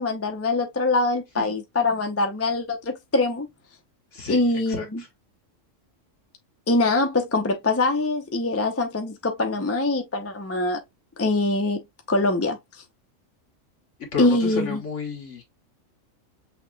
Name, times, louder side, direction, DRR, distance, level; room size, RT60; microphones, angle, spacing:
voice 1, 0.0-3.5 4.3-5.0 6.7-10.8 11.2-11.8 12.1-12.6 14.2-14.8, left 2 dB, 15° left, 0.5 m, -23 dB
voice 2, 4.7-5.1 14.1-15.6, left 5 dB, 60° left, 1.8 m, -32 dB
6.4 x 3.0 x 2.3 m
omnidirectional pair, 1.4 m